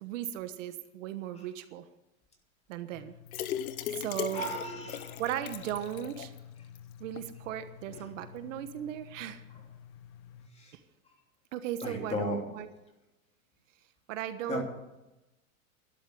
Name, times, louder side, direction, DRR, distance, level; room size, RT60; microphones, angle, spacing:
voice 1, 0.0-1.9 2.7-3.1 3.9-4.4 5.2-6.3 7.0-9.4 11.5-12.7 14.1-14.6, right 11 dB, 65° right, 10 dB, 1.4 m, -37 dB
sound 1, 2.9-10.5, left 9 dB, 35° left, 1.2 m, -50 dB
sound 2, 3.3-6.4 6.7-6.8 7.2-7.3, left 11 dB, 85° left, 1.2 m, -38 dB
voice 2, 4.3-5.2 7.9-8.1 10.5-10.7 11.8-12.4 14.5-14.6, left 1 dB, 15° left, 2 dB, 3.0 m, -35 dB
12.0 x 11.0 x 8.3 m, 0.98 s
supercardioid pair, 145°, 42 cm